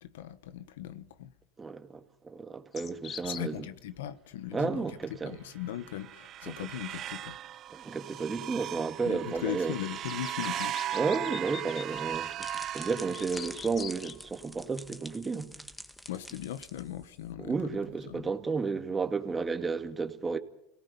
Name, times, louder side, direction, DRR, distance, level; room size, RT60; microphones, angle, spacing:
voice 1, 0.0-1.3 3.2-7.4 9.0-10.8 16.1-17.8 18.1-18.3, left 12 dB, 85° left, 1.3 m, -39 dB
voice 2, 1.6-3.7 4.5-5.4 6.5-6.6 7.7-9.7 10.9-15.5 17.4-20.4, right 4 dB, 20° right, 2.1 m, -32 dB
sound 1, 2.7-3.5 8.2-8.3 9.2-14.2, left 8 dB, 35° left, 1.0 m, -45 dB
sound 2, 5.6-13.9, right 12 dB, 45° right, 0.7 m, -38 dB
sound 3, 11.9-17.3, left 1 dB, 5° left, 1.7 m, -47 dB
29.5 x 18.5 x 5.4 m
hypercardioid pair, 90°, 0 cm